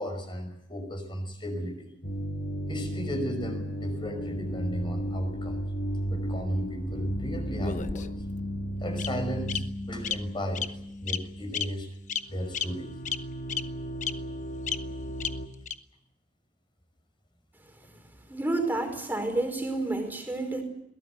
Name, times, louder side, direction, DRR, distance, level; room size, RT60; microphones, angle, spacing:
voice 1, 0.0-1.9 2.7-5.6 6.1-8.1 8.8-10.7 11.0-11.9 12.3-12.9, equal, 30° left, 6 dB, 5.5 m, -35 dB
sound 1, 2.0-12.0 12.2-15.5, equal, 60° left, 2.0 m, -35 dB
Bird vocalization bird call bird song, 7.6-8.3 9.0-9.1 9.5-9.6 10.0-10.1 10.5-10.7 11.1-11.2 11.5-11.6 12.1-12.2 12.5-12.6 13.1-13.2 13.5-13.6 14.0-14.1 14.7-14.8 15.2-15.3 15.7-15.8, left 7 dB, 45° left, 1.0 m, -30 dB
voice 2, 18.3-20.6, right 2 dB, 10° right, 4 dB, 4.9 m, -29 dB
22.0 x 17.5 x 9.3 m, 0.78 s
head